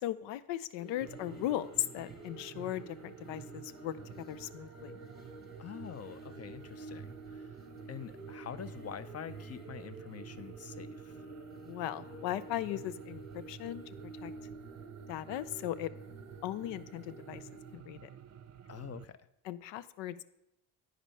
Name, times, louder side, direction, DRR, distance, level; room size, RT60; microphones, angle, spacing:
voice 1, 0.0-4.0 4.3-5.0 11.7-13.8 14.2-14.3 15.1-15.9 16.4-17.4 17.7-18.1 19.5-20.2, left 13 dB, 90° left, 15 dB, 0.5 m, -37 dB
sound 1, 0.8-17.8, right 2 dB, 20° left, 1.6 m, -50 dB
sound 2, 1.0-19.1, right 8 dB, 40° right, 0.6 m, -51 dB
voice 2, 5.6-7.5 7.9-11.2 18.7-19.2, left 9 dB, 35° left, 14 dB, 0.5 m, -45 dB
8.9 x 5.1 x 5.5 m, 0.83 s
supercardioid pair, 70°, 42 cm